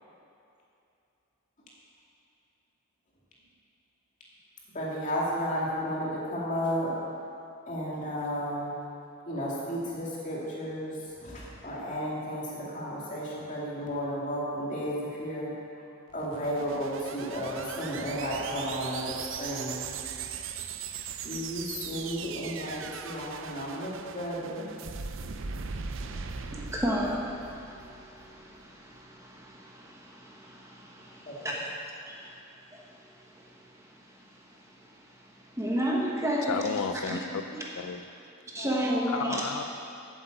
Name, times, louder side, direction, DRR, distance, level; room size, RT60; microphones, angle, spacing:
voice 1, 4.7-6.9 7.7-8.7 9.3-15.5 16.1-19.9 21.2-24.7 31.3-31.4 38.6-38.7 39.1-39.5, equal, 35° left, -5 dB, 2.4 m, -33 dB
sound 1, 16.1-28.4, right 6 dB, 65° right, 0.5 m, -39 dB
voice 2, 26.1-31.7 32.1-32.4 32.7-36.8 37.1-37.2 38.5-39.4, equal, 15° right, -3 dB, 1.2 m, -34 dB
voice 3, 36.5-37.4 37.8-38.0 39.1-39.6, left 6 dB, 80° left, 9 dB, 0.4 m, -32 dB
8.0 x 8.0 x 7.9 m, 2.6 s
head